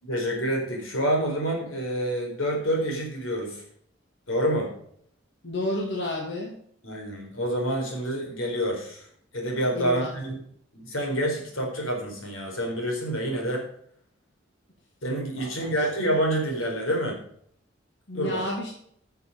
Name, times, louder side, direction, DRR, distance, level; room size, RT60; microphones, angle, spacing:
voice 1, 0.0-3.6 4.3-4.7 6.8-9.1 9.3-10.4 10.7-13.7 15.0-17.2 18.1-18.4, right 1 dB, 85° left, 1 dB, 4.5 m, -27 dB
voice 2, 5.4-6.6 9.7-10.1 15.4-15.7 18.1-18.7, left 1 dB, 60° left, -2 dB, 2.3 m, -31 dB
13.0 x 6.8 x 5.2 m, 0.65 s
head